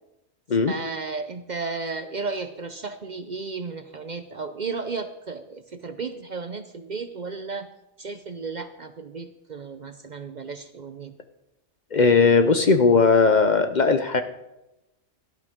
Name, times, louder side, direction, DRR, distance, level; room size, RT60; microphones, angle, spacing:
voice 1, 0.7-7.7 8.0-11.1, right 4 dB, 45° right, 9 dB, 0.7 m, -34 dB
voice 2, 11.9-14.2, left 4 dB, 45° left, 8 dB, 0.7 m, -18 dB
17.0 x 12.5 x 3.6 m, 0.94 s
omnidirectional pair, 1.2 m